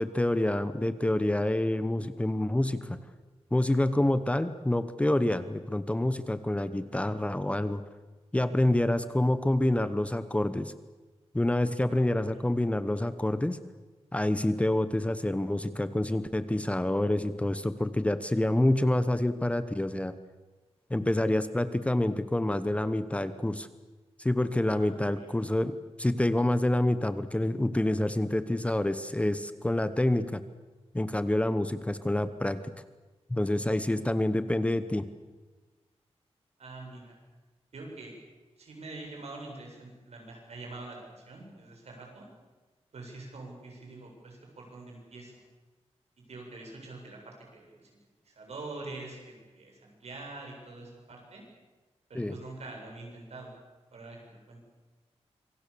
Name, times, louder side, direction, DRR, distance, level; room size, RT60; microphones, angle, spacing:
voice 1, 0.0-3.0 3.5-7.8 8.3-10.7 11.3-13.6 14.1-20.1 20.9-23.7 24.2-30.4 30.9-32.6 33.3-35.1 52.1-52.4, left 1 dB, 10° left, 12 dB, 0.9 m, -27 dB
voice 2, 11.9-12.4 24.7-25.3 36.6-37.2 37.7-38.1 38.6-42.3 42.9-45.3 46.3-47.9 48.2-51.4 52.1-53.5 53.9-54.6, right 2 dB, 75° right, 0 dB, 7.6 m, -45 dB
26.0 x 24.0 x 6.9 m, 1.2 s
wide cardioid pair, 155°, 11 cm